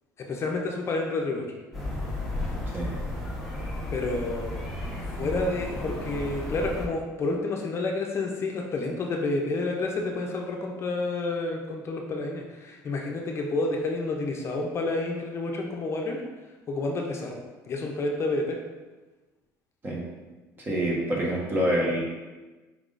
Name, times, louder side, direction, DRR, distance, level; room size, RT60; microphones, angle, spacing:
voice 1, 0.3-1.5 3.9-4.7 5.2-16.2 16.7-17.4 17.7-18.6, left 2 dB, 40° left, 1 dB, 0.5 m, -29 dB
sound 1, 1.7-6.9, left 1 dB, ahead, 1.0 m, -33 dB
voice 2, 20.7-22.0, right 1 dB, 30° right, -3 dB, 1.1 m, -26 dB
4.8 x 3.5 x 2.5 m, 1.2 s
cardioid pair, 110°, 7 cm